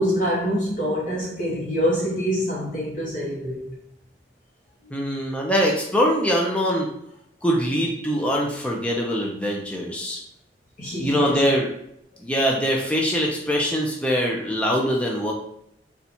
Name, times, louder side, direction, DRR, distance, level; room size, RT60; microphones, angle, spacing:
voice 1, 0.0-3.8 10.8-11.4, equal, 45° left, -6 dB, 0.9 m, -25 dB
voice 2, 4.9-6.9 7.4-10.2 11.0-11.7 12.2-15.3, equal, 5° left, -2 dB, 0.5 m, -23 dB
4.0 x 2.4 x 4.2 m, 0.74 s
head